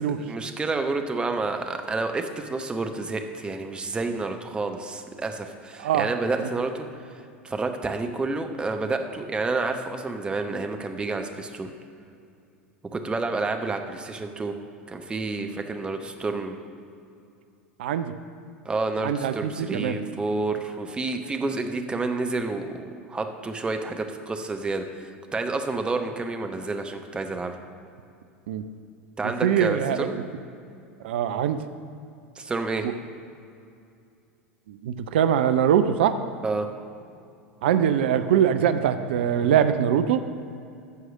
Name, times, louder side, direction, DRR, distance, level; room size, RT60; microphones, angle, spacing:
voice 1, 0.0-6.9 7.1-11.7 12.9-14.5 14.9-16.6 18.6-27.6 29.2-30.1 32.4-32.9 36.4-36.7, right 3 dB, 15° right, 5 dB, 0.8 m, -29 dB
voice 2, 5.8-6.1 6.4-6.5 17.8-18.1 19.0-20.0 28.5-28.6 29.4-30.2 31.0-31.6 34.7-36.2 37.6-40.3, right 9 dB, 60° right, 10 dB, 0.5 m, -22 dB
14.0 x 4.8 x 6.4 m, 2.5 s
figure-of-eight pair, 80°, 7 cm